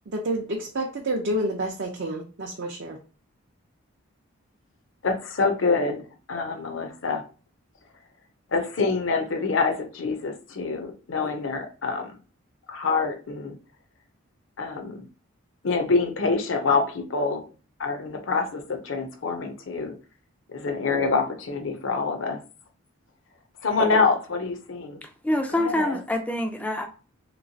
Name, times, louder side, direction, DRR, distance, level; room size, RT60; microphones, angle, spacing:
voice 1, 0.1-3.0, right 1 dB, 55° right, 0.5 m, -29 dB
voice 2, 5.0-7.2 8.5-12.1 12.7-13.6 14.6-15.1 15.6-17.4 17.8-20.0 20.5-22.4 23.6-25.0 25.5-26.0, left 4 dB, 65° left, 0.6 m, -26 dB
voice 3, 25.2-26.9, left 1 dB, 5° left, 0.3 m, -25 dB
3.1 x 3.0 x 2.7 m
head